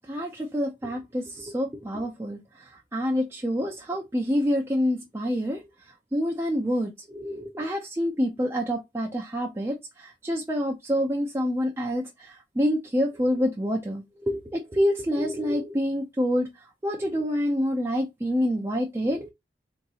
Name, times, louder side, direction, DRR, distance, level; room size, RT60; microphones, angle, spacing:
voice 1, 0.1-5.6 6.1-16.5 16.8-19.3, equal, 15° right, 0.4 m, -27 dB
3.7 x 2.8 x 2.3 m
head